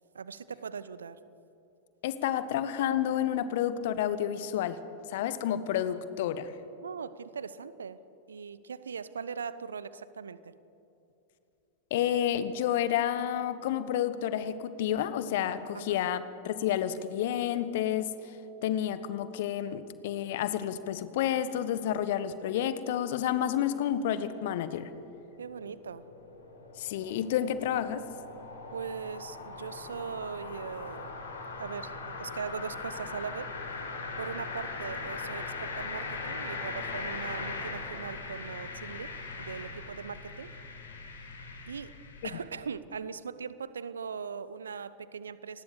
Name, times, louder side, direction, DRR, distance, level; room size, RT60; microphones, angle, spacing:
voice 1, 0.1-1.2 6.8-8.0 8.3-10.5 15.7-16.0 25.4-26.0 28.7-31.1 31.6-33.5 34.2-39.1 39.4-40.5 41.7-41.9 42.2-45.6, right 6 dB, 70° right, 16 dB, 0.9 m, -40 dB
voice 2, 2.0-4.8 5.1-6.5 11.9-18.4 18.6-24.9 26.8-28.1, left 10 dB, 55° left, 13 dB, 1.4 m, -30 dB
sound 1, 24.9-42.4, left 3 dB, 70° left, 4.0 m, -40 dB
29.0 x 20.0 x 6.9 m, 2.8 s
figure-of-eight pair, 90°, 0 cm